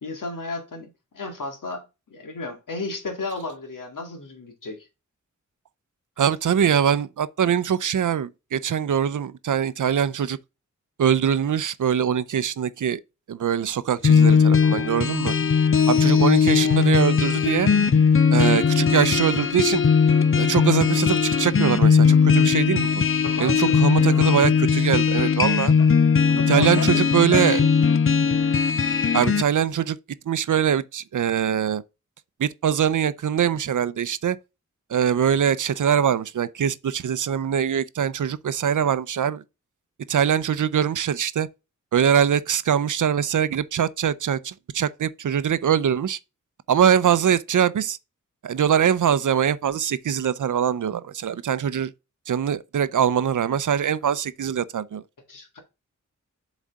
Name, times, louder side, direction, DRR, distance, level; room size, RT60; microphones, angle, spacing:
voice 1, 0.0-4.9 23.2-24.5 25.8-25.9 26.3-27.9 55.3-55.6, left 3 dB, 85° left, 2.0 m, -34 dB
voice 2, 6.2-10.4 11.0-13.0 13.3-15.3 15.9-17.7 18.3-19.8 20.4-22.9 23.4-25.7 26.5-27.6 29.1-30.0 30.3-31.8 32.4-34.4 34.9-39.4 40.1-41.5 41.9-46.2 46.7-48.0 48.4-51.9 52.3-55.0, right 8 dB, 75° right, 0.6 m, -22 dB
sound 1, 14.0-29.4, left 6 dB, 45° left, 0.5 m, -19 dB
7.4 x 4.1 x 3.6 m
wide cardioid pair, 110°, 31 cm